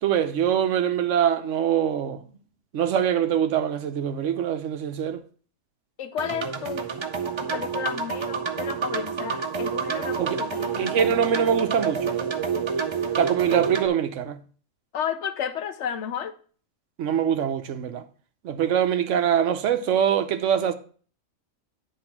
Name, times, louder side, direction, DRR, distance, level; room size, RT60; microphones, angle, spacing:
voice 1, 0.0-2.2 2.7-5.2 10.2-10.4 10.8-12.2 13.2-14.4 17.0-18.0 18.4-20.7, right 8 dB, 75° right, 1.0 m, -23 dB
voice 2, 6.0-6.9 7.4-10.9 14.9-16.3, left 8 dB, 70° left, 1.0 m, -32 dB
sound 1, 6.2-13.9, right 6 dB, 45° right, 0.4 m, -28 dB
9.7 x 3.4 x 5.8 m
omnidirectional pair, 1.3 m